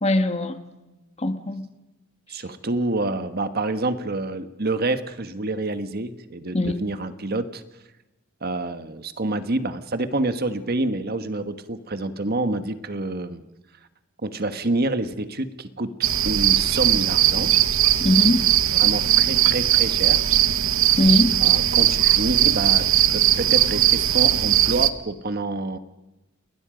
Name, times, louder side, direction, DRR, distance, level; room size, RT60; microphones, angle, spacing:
voice 1, 0.0-0.6 1.2-1.7 6.5-6.7 18.0-18.5 21.0-21.4, left 1 dB, 30° left, 8 dB, 1.6 m, -21 dB
voice 2, 2.3-7.6 8.4-13.4 14.2-15.9 16.2-17.5 18.7-20.3 21.4-25.8, right 2 dB, 50° right, 10 dB, 1.4 m, -27 dB
sound 1, 16.0-24.9, right 11 dB, 75° right, 1.1 m, -19 dB
29.0 x 20.5 x 5.2 m, 1.0 s
head